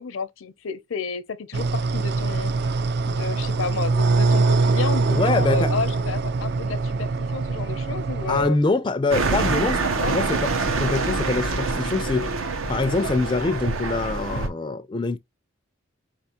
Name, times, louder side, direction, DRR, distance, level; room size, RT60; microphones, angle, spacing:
voice 1, 0.0-2.5 3.1-8.6 9.9-10.1, left 4 dB, 75° left, 0.6 m, -31 dB
sound 1, 1.5-8.5, right 3 dB, 55° right, 0.3 m, -23 dB
voice 2, 5.1-5.7 8.3-12.3 12.7-15.2, left 3 dB, 25° left, 0.3 m, -24 dB
sound 2, 9.1-14.5, right 3 dB, 85° right, 0.9 m, -25 dB
4.9 x 3.3 x 2.8 m
head